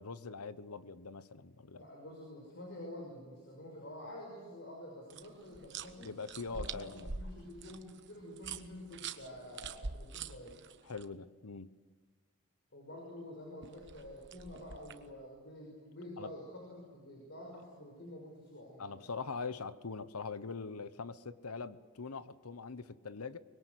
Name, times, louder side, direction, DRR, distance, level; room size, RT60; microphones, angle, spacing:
voice 1, 0.0-1.9 6.0-7.1 10.8-11.7 16.2-16.3 18.8-23.4, left 4 dB, 85° left, 14 dB, 1.0 m, -43 dB
voice 2, 1.8-6.1 6.5-10.6 12.7-19.1, left 1 dB, 55° left, 0 dB, 5.8 m, -49 dB
sound 1, 5.1-11.0 13.6-15.1, right 5 dB, 55° right, 1.1 m, -45 dB
24.5 x 21.5 x 8.2 m, 1.4 s
head